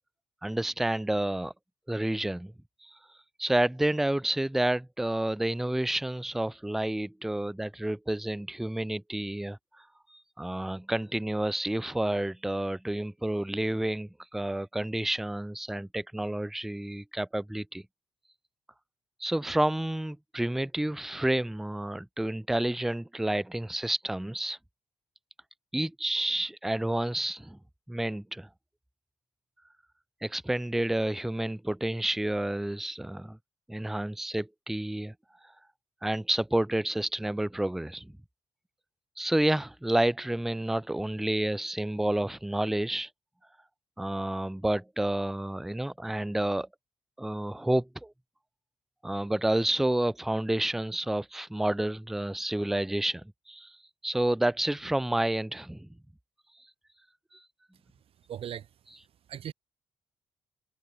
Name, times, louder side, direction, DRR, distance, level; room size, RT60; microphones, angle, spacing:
voice 1, 0.4-1.5 1.9-2.5 2.8-3.0 3.4-17.8 19.2-24.6 25.7-27.6 27.9-28.5 30.2-33.4 33.7-35.1 36.0-38.1 39.2-43.1 44.0-46.7 47.2-48.1 49.0-53.8 54.0-55.9 57.3-57.4, right 1 dB, 5° right, 0.3 m, -30 dB
voice 2, 57.9-59.5, right 10 dB, 60° right, 5.3 m, -42 dB
hypercardioid pair, 40°, 11 cm